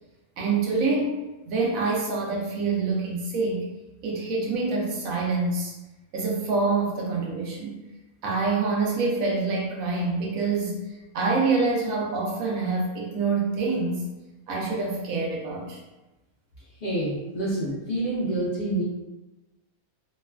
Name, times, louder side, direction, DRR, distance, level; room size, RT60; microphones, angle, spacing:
voice 1, 0.4-1.2 1.5-3.6 4.0-5.7 6.1-7.8 8.2-14.0 14.5-15.8, right 3 dB, 75° right, -2 dB, 1.0 m, -26 dB
voice 2, 16.8-18.8, right 1 dB, 50° left, -9 dB, 0.6 m, -27 dB
3.0 x 2.2 x 2.2 m, 1.0 s
omnidirectional pair, 1.6 m